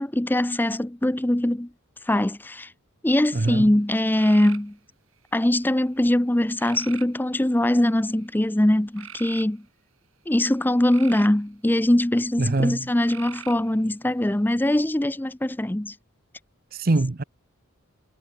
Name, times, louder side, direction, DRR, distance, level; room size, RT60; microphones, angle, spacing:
voice 1, 0.0-1.7 2.0-2.7 3.0-4.8 5.3-9.6 10.3-16.0, left 1 dB, 10° left, 0.5 m, -22 dB
sound 1, 3.2-3.6 4.1-4.7 5.4-5.9 6.6-7.1 7.8-8.2 8.9-9.5 10.6-11.4 13.1-13.7, right 9 dB, 70° right, 4.4 m, -42 dB
voice 2, 3.3-3.7 12.4-12.8 16.7-17.2, right 2 dB, 45° right, 0.7 m, -23 dB
head